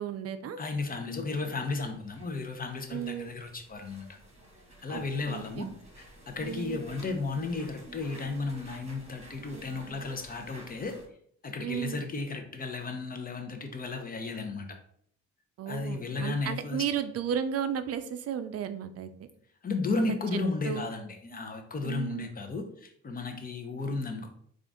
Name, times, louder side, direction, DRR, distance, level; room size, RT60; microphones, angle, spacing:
voice 1, 0.0-0.6 2.9-3.3 4.9-5.7 6.4-6.8 11.6-12.0 15.6-19.1 20.6-20.9 21.8-22.3, right 9 dB, 55° right, 11 dB, 0.5 m, -34 dB
voice 2, 0.6-4.1 4.8-5.6 6.0-11.0 11.4-14.7 15.7-16.9 19.6-24.3, left 3 dB, 30° left, 5 dB, 0.7 m, -34 dB
sound 1, 1.3-11.1, right 1 dB, 20° right, 1.6 m, -51 dB
3.6 x 2.5 x 3.5 m, 0.64 s
cardioid pair, 90°, 30 cm